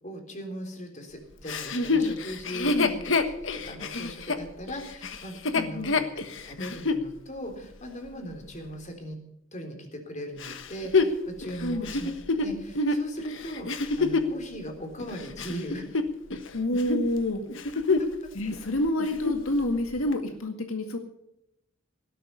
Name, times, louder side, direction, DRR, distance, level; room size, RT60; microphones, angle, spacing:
voice 1, 0.0-6.1 6.4-9.2 9.5-15.8 18.0-18.3, equal, 35° left, 4 dB, 3.7 m, -39 dB
Chuckle chortle, 1.5-7.1 7.6-7.7 10.4-14.4 15.0-16.5 16.7-17.1 17.5-18.2 18.5-18.6 19.0-19.5 20.1-20.2, left 3 dB, 65° left, 1.4 m, -27 dB
voice 2, 2.6-2.9 5.5-5.9 11.6-11.9 16.5-17.4 18.3-21.0, left 1 dB, 85° left, 5 dB, 2.0 m, -28 dB
17.5 x 12.5 x 5.6 m, 0.78 s
head